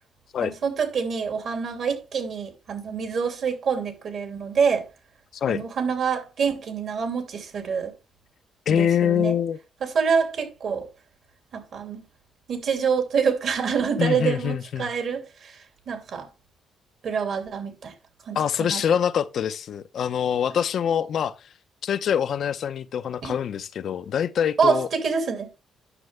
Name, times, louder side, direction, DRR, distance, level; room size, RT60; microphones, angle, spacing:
voice 1, 0.4-4.9 5.5-7.9 8.7-9.3 9.8-10.9 11.5-12.0 12.5-16.3 17.0-17.9 18.2-18.4 18.7-18.8 23.2-23.3 24.6-25.5, right 6 dB, 65° right, 2.9 m, -26 dB
voice 2, 5.3-5.6 8.7-9.6 14.0-14.9 18.3-21.4 21.8-24.9, left 8 dB, 65° left, 0.6 m, -24 dB
9.8 x 6.5 x 3.3 m
cardioid pair, 90°, 0 cm